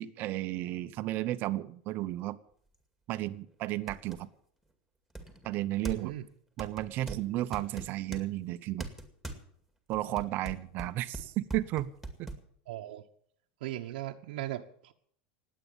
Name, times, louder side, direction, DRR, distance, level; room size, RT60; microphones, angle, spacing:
voice 1, 0.0-2.4 3.1-4.3 5.4-6.1 6.6-8.9 9.9-11.9 12.2-12.3, right 15 dB, 45° right, 13 dB, 0.8 m, -33 dB
sound 1, 2.7-2.8 3.4-3.5 3.9-4.3 5.1-6.2 6.6-8.3 8.8-9.4 9.9-12.4, right 2 dB, ahead, 2.2 m, -41 dB
voice 2, 5.8-6.2 12.7-13.0 13.6-14.9, right 14 dB, 80° right, 2 dB, 1.1 m, -38 dB
19.5 x 8.5 x 7.1 m, 0.63 s
supercardioid pair, 145°, 5 cm